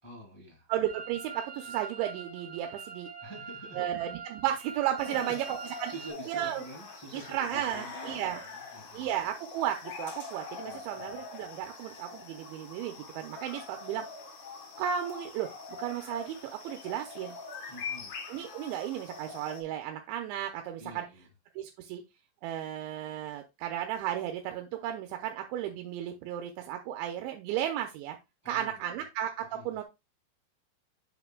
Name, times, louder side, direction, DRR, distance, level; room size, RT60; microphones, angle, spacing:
voice 1, 0.0-0.7 3.2-3.8 5.1-9.1 10.6-11.2 17.7-18.1 20.8-21.3 28.4-28.8 29.5-29.8, right 1 dB, 25° left, 0.6 m, -47 dB
voice 2, 0.7-3.1 3.8-5.9 6.3-6.6 7.1-8.4 8.9-14.1 14.8-17.4 18.3-21.0 21.6-22.0 22.4-28.2 28.5-29.8, right 11 dB, 80° right, 3.0 m, -34 dB
sound 1, 0.8-6.1, right 5 dB, 60° right, 3.9 m, -44 dB
sound 2, 5.0-19.6, left 4 dB, 65° left, 1.4 m, -44 dB
8.4 x 6.2 x 2.2 m
omnidirectional pair, 5.4 m